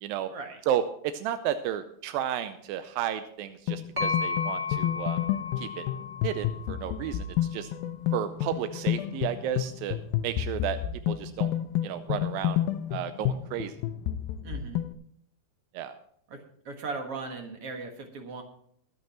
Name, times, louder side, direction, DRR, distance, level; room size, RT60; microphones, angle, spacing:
voice 1, 0.7-5.2 5.6-5.9 6.2-7.7 8.1-10.0 10.2-10.8 11.1-11.5 11.8-12.6 12.9-13.7 15.7-15.9, right 10 dB, 85° right, 9 dB, 2.4 m, -32 dB
sound 1, 3.7-14.9, left 12 dB, 90° left, 2.5 m, -30 dB
sound 2, 4.0-7.7, left 4 dB, 20° right, 1.5 m, -34 dB
voice 2, 14.4-14.8 16.3-16.4 16.7-18.4, right 4 dB, 50° right, 4 dB, 2.0 m, -38 dB
22.0 x 8.7 x 2.9 m, 0.66 s
omnidirectional pair, 4.1 m